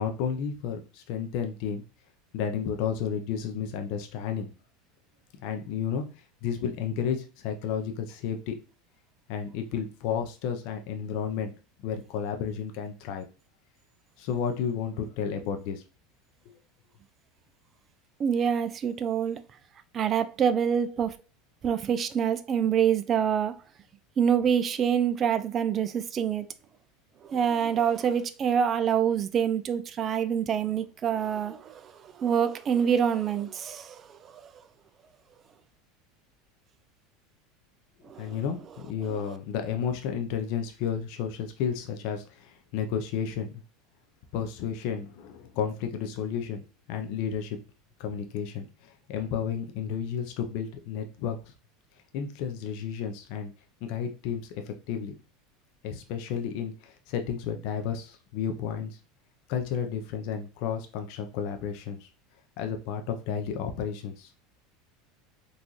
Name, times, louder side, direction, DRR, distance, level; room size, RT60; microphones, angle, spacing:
voice 1, 0.0-1.8 2.3-4.5 5.4-8.6 9.3-11.5 11.8-13.3 14.2-15.8 38.2-43.6 44.3-47.6 48.0-51.5 52.1-53.5 53.8-55.1 55.8-59.0 59.5-62.1 62.6-64.3, left 7 dB, 60° left, 0.5 m, -32 dB
voice 2, 18.2-19.4 19.9-21.2 21.6-23.6 24.2-26.5 27.2-34.5 38.0-38.4 39.2-39.3, right 8 dB, 35° right, 0.4 m, -26 dB
3.9 x 2.5 x 2.9 m
supercardioid pair, 120°, 0 cm